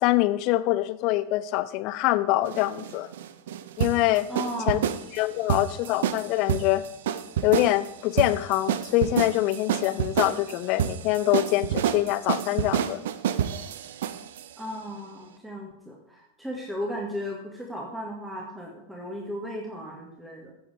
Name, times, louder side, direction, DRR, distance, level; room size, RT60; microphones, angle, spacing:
voice 1, 0.0-3.1 3.8-4.3 4.7-4.8 5.1-6.8 7.4-13.0, left 16 dB, 40° left, 15 dB, 0.6 m, -24 dB
sound 1, 2.4-14.5, right 10 dB, 55° right, 0.6 m, -29 dB
voice 2, 4.3-5.0 14.6-20.5, equal, 5° right, -2 dB, 1.9 m, -35 dB
15.0 x 7.1 x 3.5 m, 0.80 s
figure-of-eight pair, 90°, 0 cm